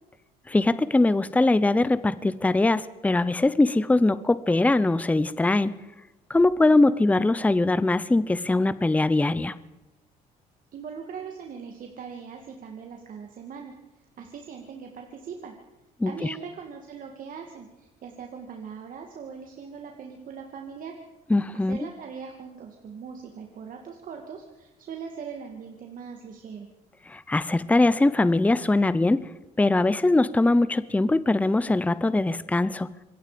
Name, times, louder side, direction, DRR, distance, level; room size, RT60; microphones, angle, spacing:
voice 1, 0.5-5.7 6.3-9.6 16.0-16.3 21.3-21.8 27.1-29.3 29.6-32.9, left 2 dB, 10° left, 16 dB, 0.7 m, -22 dB
voice 2, 10.7-13.7 14.2-15.5 16.0-20.9 21.5-26.7, right 6 dB, 55° right, 2 dB, 2.4 m, -40 dB
26.0 x 22.0 x 5.2 m, 1.0 s
cardioid pair, 110°, 17 cm